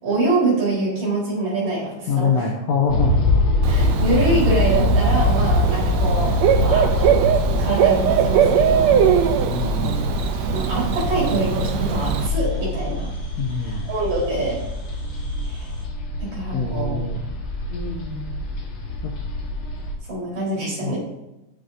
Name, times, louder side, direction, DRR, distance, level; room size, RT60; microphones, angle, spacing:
voice 1, 0.0-2.5 3.7-7.2 7.5-9.2 9.6-10.0 10.5-13.1 13.6-14.6 15.5-15.7 16.2-17.0 17.7-18.2 20.1-21.0, right 2 dB, 55° right, -5 dB, 5.5 m, -25 dB
voice 2, 2.1-3.2 9.4-10.0 13.4-13.9 16.5-17.2 19.0-19.1 20.8-20.9, left 6 dB, 70° left, 2 dB, 1.7 m, -24 dB
sound 1, 2.9-19.9, left 1 dB, 50° left, 2.0 m, -24 dB
Bird / Cricket, 3.6-12.3, right 8 dB, 85° right, 1.6 m, -21 dB
sound 2, 5.6-15.9, right 2 dB, 20° left, 1.2 m, -41 dB
17.0 x 7.0 x 2.7 m, 0.96 s
omnidirectional pair, 3.7 m